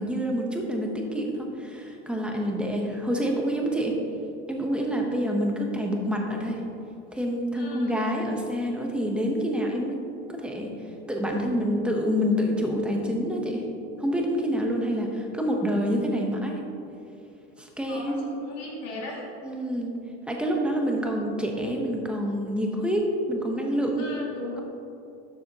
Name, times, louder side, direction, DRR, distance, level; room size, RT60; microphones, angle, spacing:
voice 1, 0.0-4.0 4.5-6.6 7.1-10.0 10.3-10.7 11.1-13.7 14.0-16.6 17.6-18.2 19.4-19.9 20.3-24.0, equal, 5° right, 0 dB, 0.7 m, -27 dB
voice 2, 7.5-8.1 17.8-19.2 24.0-24.6, left 2 dB, 50° left, -3 dB, 2.0 m, -38 dB
11.5 x 7.5 x 2.7 m, 2.8 s
cardioid pair, 160°, 33 cm